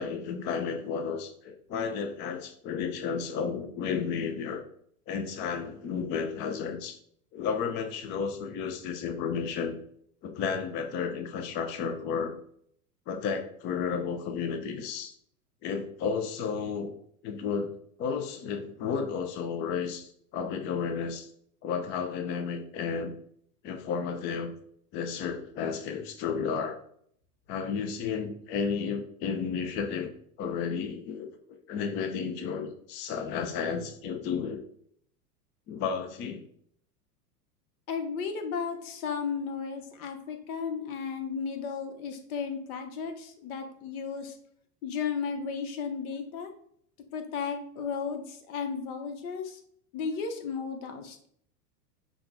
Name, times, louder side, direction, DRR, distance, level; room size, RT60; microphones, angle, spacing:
voice 1, 0.0-4.6 5.1-7.0 7.3-9.8 10.2-12.4 13.1-15.1 15.6-16.9 17.2-17.7 18.0-21.3 21.6-23.1 23.6-24.5 24.9-26.8 27.5-30.1 30.4-34.6 35.7-36.5, left 6 dB, 25° left, 6 dB, 0.3 m, -32 dB
voice 2, 37.9-44.4 44.8-46.5 47.1-49.6 49.9-51.3, left 6 dB, 65° left, 5 dB, 1.1 m, -34 dB
5.8 x 2.3 x 3.9 m, 0.66 s
hypercardioid pair, 100°, 47 cm